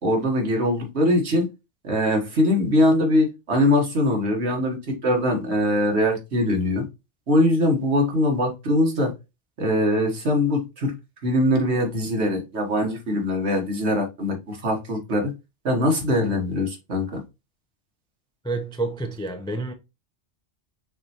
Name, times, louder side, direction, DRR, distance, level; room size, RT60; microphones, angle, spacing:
voice 1, 0.0-1.5 1.8-6.8 7.3-9.1 9.6-10.9 11.2-15.3 15.6-17.2, left 1 dB, 65° right, 1.7 m, -22 dB
voice 2, 18.4-19.7, right 2 dB, 5° left, 0.4 m, -29 dB
5.8 x 3.2 x 2.9 m
omnidirectional pair, 1.2 m